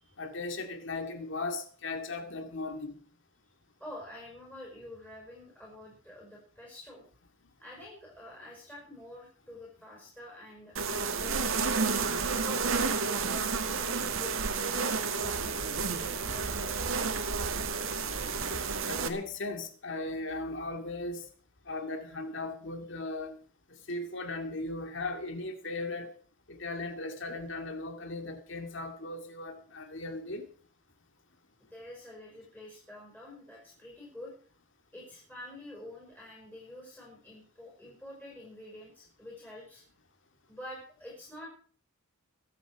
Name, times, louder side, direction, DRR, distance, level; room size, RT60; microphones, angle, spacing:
voice 1, 0.2-3.0 18.8-21.2 21.7-23.3 23.9-26.1 26.5-30.5, left 2 dB, 60° left, 2.1 m, -37 dB
voice 2, 3.8-7.0 7.6-16.8 31.7-34.3 34.9-39.8 40.5-41.5, left 1 dB, 10° left, 5.6 m, -47 dB
sound 1, 10.8-19.1, right 5 dB, 70° right, 1.7 m, -31 dB
23.5 x 8.4 x 4.9 m
head